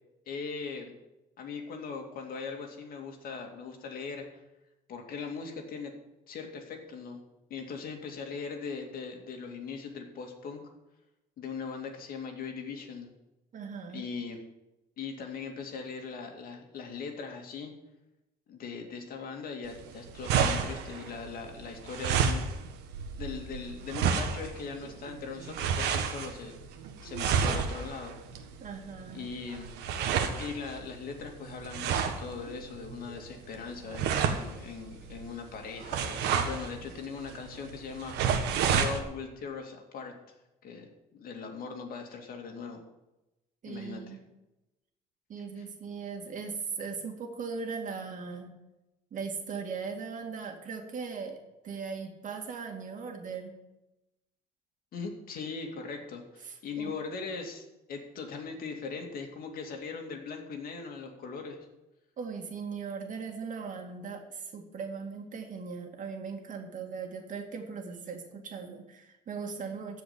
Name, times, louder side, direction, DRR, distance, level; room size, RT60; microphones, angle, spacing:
voice 1, 0.3-0.9 1.4-4.4 4.9-5.9 6.3-7.2 7.5-10.7 11.4-13.1 13.9-14.4 15.0-17.7 18.5-22.4 23.2-26.5 27.0-28.2 29.1-29.7 30.4-38.2 38.7-40.1 40.6-42.8 43.7-44.2 45.6-45.7 54.9-61.6, left 5 dB, 60° left, 3 dB, 2.4 m, -40 dB
voice 2, 13.5-14.0 28.6-29.3 43.6-44.2 45.3-48.5 49.1-51.4 51.6-53.5 56.4-56.9 62.2-70.0, right 5 dB, 50° right, 3 dB, 2.3 m, -39 dB
sound 1, 19.6-39.0, right 7 dB, 90° right, 1.5 m, -31 dB
15.0 x 5.1 x 8.8 m, 0.98 s
cardioid pair, 110°, 17 cm